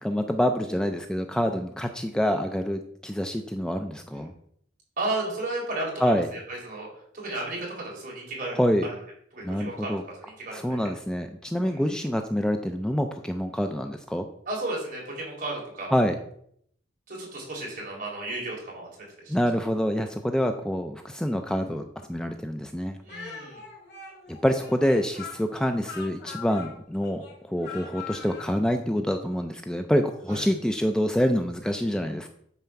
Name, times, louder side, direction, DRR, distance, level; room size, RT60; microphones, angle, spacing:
voice 1, 0.0-4.3 6.0-6.3 8.5-8.9 9.4-10.0 10.5-14.3 15.9-16.2 19.3-23.0 24.3-32.3, equal, 5° left, 5 dB, 0.5 m, -26 dB
voice 2, 5.0-6.9 7.1-8.6 9.3-10.0 10.2-10.9 11.6-11.8 14.5-15.9 17.1-18.9 19.2-19.3 23.0-23.6 30.3-30.4, right 2 dB, 45° right, -3 dB, 4.1 m, -33 dB
Speech, 23.1-28.6, left 6 dB, 60° left, 2.8 m, -42 dB
9.3 x 4.3 x 6.9 m, 0.69 s
head